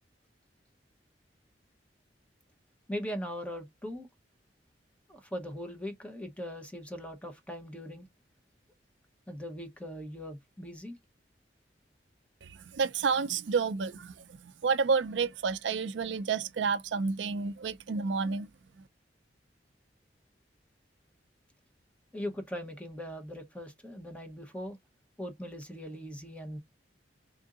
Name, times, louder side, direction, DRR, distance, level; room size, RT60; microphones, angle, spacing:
voice 1, 2.9-4.1 5.1-8.1 9.3-11.0 22.1-24.8 25.2-26.6, equal, 5° left, 0.9 m, -40 dB
voice 2, 12.7-14.1 14.4-18.5, right 5 dB, 80° right, 0.5 m, -30 dB
3.7 x 2.7 x 3.6 m
head